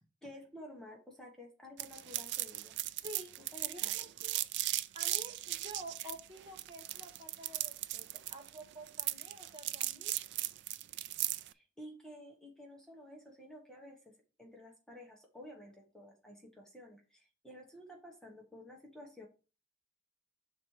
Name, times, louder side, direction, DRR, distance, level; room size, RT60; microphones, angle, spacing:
voice 1, 0.2-2.8 3.4-3.9 11.5-19.3, left 1 dB, 5° left, 0 dB, 1.1 m, -52 dB
sound 1, 1.8-11.5, right 15 dB, 60° right, 0.3 m, -37 dB
voice 2, 3.7-4.4 4.9-10.1, right 1 dB, 25° right, 2 dB, 1.2 m, -50 dB
6.0 x 4.2 x 4.6 m, 0.33 s
head